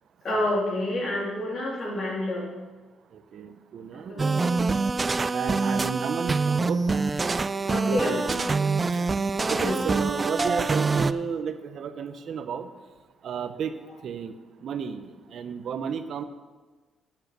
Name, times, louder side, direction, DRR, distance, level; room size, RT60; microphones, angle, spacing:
voice 1, 0.2-2.5 4.1-4.4 7.7-8.5 9.4-9.9, left 1 dB, 50° left, -3 dB, 3.4 m, -29 dB
voice 2, 3.3-4.3 5.3-7.1 7.8-8.4 8.9-9.1 9.5-12.7 13.2-13.7 14.0-14.3 14.6-15.1 15.3-16.2, right 7 dB, 65° right, 10 dB, 0.8 m, -32 dB
sound 1, 4.2-11.1, right 4 dB, 30° right, 0.3 m, -25 dB
8.8 x 8.2 x 6.0 m, 1.3 s
cardioid pair, 90°, 0 cm